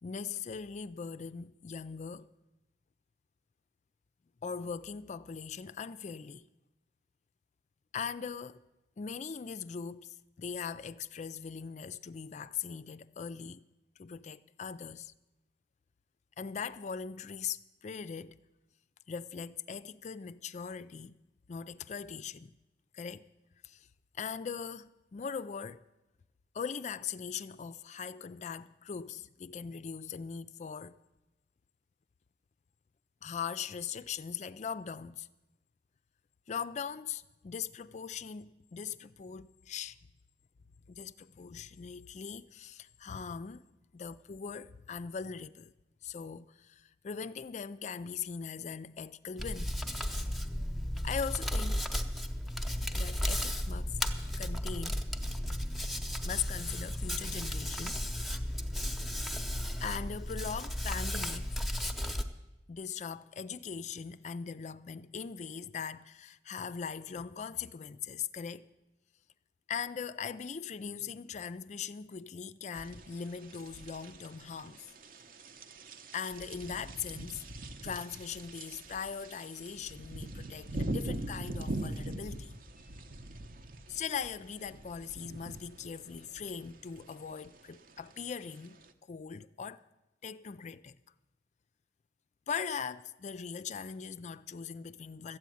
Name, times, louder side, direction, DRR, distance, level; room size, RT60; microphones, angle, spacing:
voice 1, 0.0-2.3 4.4-6.5 7.9-8.6 9.0-13.6 14.0-15.1 16.4-18.4 19.1-21.2 21.5-22.5 22.9-23.3 23.6-23.9 24.2-25.8 26.5-31.0 33.2-35.3 36.5-40.0 40.9-43.6 43.9-45.7 46.0-49.7 51.0-51.9 52.9-54.0 54.4-55.0 56.2-58.0 59.8-61.6 62.7-68.7 69.7-74.9 76.1-77.5 77.8-82.5 83.9-89.8 90.2-91.0 92.5-95.4, left 6 dB, 40° left, 0.4 m, -40 dB
Hands, 49.4-62.2, equal, ahead, 0.8 m, -34 dB
sound 1, 72.7-88.9, right 2 dB, 50° right, 0.9 m, -43 dB
13.5 x 8.3 x 9.1 m
head